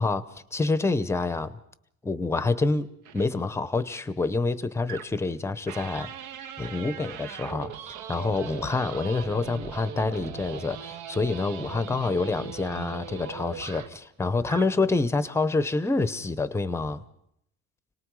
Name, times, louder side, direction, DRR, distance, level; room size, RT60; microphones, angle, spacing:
voice 1, 0.0-1.6 2.0-6.1 6.6-7.7 8.1-17.0, left 3 dB, 10° left, 14 dB, 0.7 m, -27 dB
sound 1, 3.1-3.3 4.9-5.3 5.7-14.0 14.4-14.8, right 8 dB, 75° right, 1.4 m, -40 dB
30.0 x 19.0 x 4.8 m, 0.73 s
cardioid pair, 160°, 30 cm